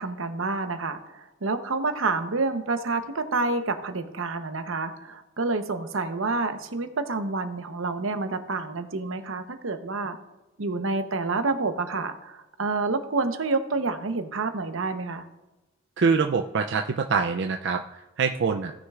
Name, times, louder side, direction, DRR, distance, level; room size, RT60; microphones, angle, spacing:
voice 1, 0.0-10.2 10.6-15.2, right 3 dB, 80° right, 8 dB, 0.9 m, -28 dB
voice 2, 16.0-17.8 18.2-18.7, right 5 dB, 60° right, 5 dB, 0.4 m, -24 dB
17.0 x 6.4 x 2.4 m, 1.0 s
head